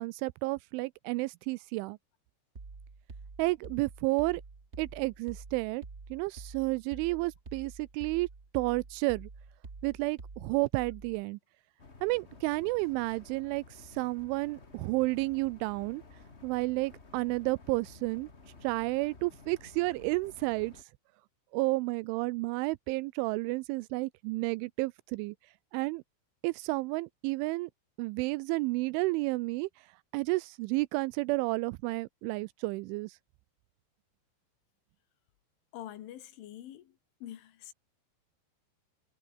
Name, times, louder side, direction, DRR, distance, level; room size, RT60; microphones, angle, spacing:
voice 1, 0.0-2.0 3.4-4.4 4.8-5.8 6.1-8.3 8.5-9.3 9.8-11.4 12.0-16.0 16.4-18.3 18.6-20.7 21.5-25.4 25.7-26.0 26.4-27.7 28.0-29.7 30.1-33.2, right 23 dB, 85° right, 3.0 m, -31 dB
sound 1, 2.5-11.2, right 4 dB, 50° right, 0.7 m, -48 dB
sound 2, 11.8-20.8, left 3 dB, 45° left, 0.8 m, -54 dB
voice 2, 35.7-37.0 37.2-37.7, left 12 dB, 85° left, 4.5 m, -45 dB
omnidirectional pair, 5.4 m